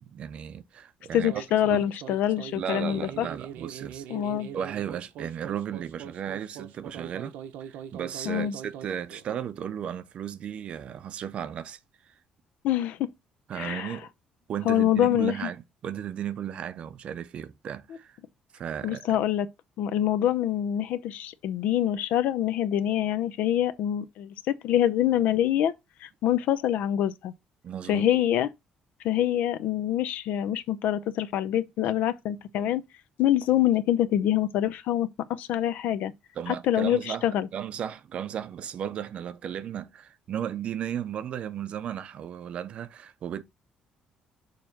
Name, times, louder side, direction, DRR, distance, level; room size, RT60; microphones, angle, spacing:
voice 1, 0.0-1.3 1.7-1.9 2.5-4.0 4.5-11.8 13.5-14.1 14.5-18.2 18.5-19.2 27.6-28.1 36.4-43.4, right 9 dB, 40° right, 0.6 m, -35 dB
voice 2, 1.1-3.3 4.1-4.5 8.3-8.5 12.6-13.1 13.6-14.0 14.6-15.5 18.8-19.5 19.8-24.3 24.6-25.7 26.0-27.3 27.9-28.5 29.0-32.8 33.2-36.1 36.5-37.5, left 11 dB, 70° left, 0.7 m, -25 dB
sound 1, 1.1-9.5, right 9 dB, 80° right, 0.8 m, -42 dB
6.7 x 3.1 x 5.8 m
cardioid pair, 175°, 3 cm